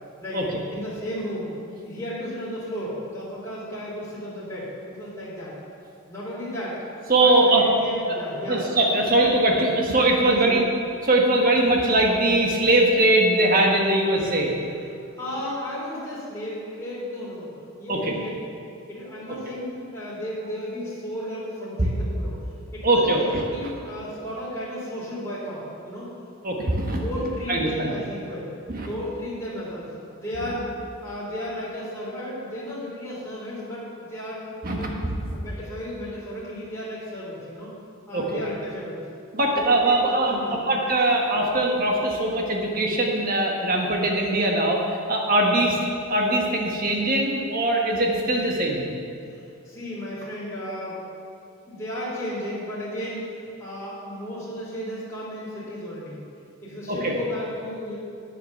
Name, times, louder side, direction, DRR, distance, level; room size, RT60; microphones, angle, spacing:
voice 1, 0.7-1.5 1.8-5.6 6.1-6.8 7.1-8.7 10.2-10.6 14.6-17.5 17.8-18.6 18.9-22.4 22.7-26.1 26.9-30.7 31.0-34.9 35.3-37.7 38.1-39.0 39.5-40.7 41.3-41.4 45.5-45.7 49.2-51.1 51.7-56.2 56.6-58.0, equal, 15° left, -10 dB, 3.0 m, -34 dB
voice 2, 7.1-7.6 8.0-8.1 8.5-10.6 11.0-14.5 17.9-18.1 22.8-23.4 26.4-27.0 27.5-27.7 28.7-28.9 30.4-30.5 34.6-35.4 38.1-38.4 39.3-45.8 46.1-48.9 56.9-57.1, right 1 dB, 40° right, 0 dB, 1.4 m, -21 dB
9.2 x 7.7 x 6.9 m, 2.5 s
head